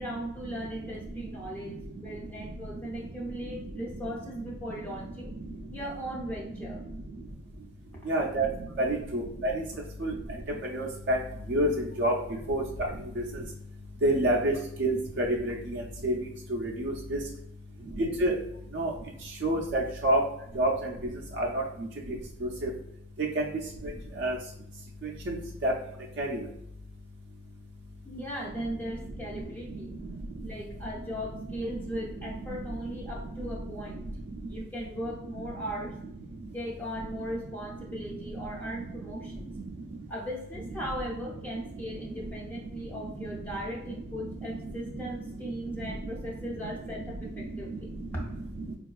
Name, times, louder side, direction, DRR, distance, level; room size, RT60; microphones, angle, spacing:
voice 1, 0.0-5.3 5.7-6.8 8.0-8.1 28.0-29.9 30.4-34.1 34.4-35.9 36.5-39.5 40.1-48.4, equal, 10° left, -4 dB, 0.4 m, -38 dB
voice 2, 8.1-8.5 8.8-9.5 10.0-10.1 10.7-11.2 11.5-11.7 12.0-12.1 12.5-12.6 14.0-14.5 14.8-16.1 16.5-17.2 18.0-18.3 18.7-18.9 19.4-20.2 20.6-20.7 21.4-21.6 24.2-24.3 25.3-25.4 25.6-25.7 26.2-26.4, right 1 dB, 55° right, -1 dB, 0.4 m, -27 dB
4.3 x 2.3 x 2.3 m, 0.76 s
head